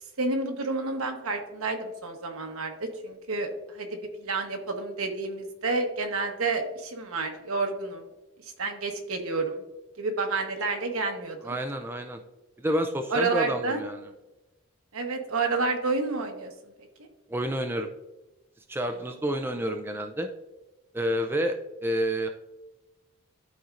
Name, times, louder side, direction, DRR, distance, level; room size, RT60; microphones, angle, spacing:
voice 1, 0.2-8.1 8.4-9.6 10.0-11.5 13.1-13.8 14.9-16.5, right 3 dB, 80° right, 4 dB, 1.1 m, -30 dB
voice 2, 11.4-12.2 12.6-14.0 17.3-17.9 18.7-20.3 20.9-22.3, equal, 10° right, 5 dB, 0.4 m, -29 dB
12.5 x 4.3 x 2.5 m, 1.0 s
head